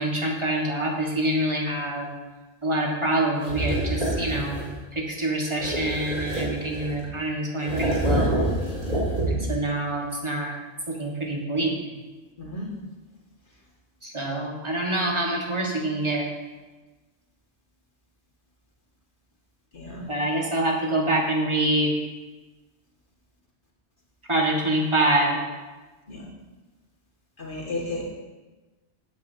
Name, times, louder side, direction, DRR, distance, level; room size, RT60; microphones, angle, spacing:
voice 1, 0.0-2.1 2.6-8.4 9.3-10.5 10.9-11.8 14.0-16.3 20.1-21.9 24.3-25.4, right 1 dB, 30° right, -2 dB, 1.7 m, -26 dB
sound 1, 3.4-4.8 5.6-7.1 7.6-9.6, right 1 dB, 55° right, 3.4 m, -27 dB
voice 2, 12.4-12.7 19.7-20.1 26.1-26.3 27.4-28.1, left 1 dB, 55° left, -4 dB, 2.2 m, -33 dB
15.0 x 8.8 x 2.8 m, 1.2 s
omnidirectional pair, 1.1 m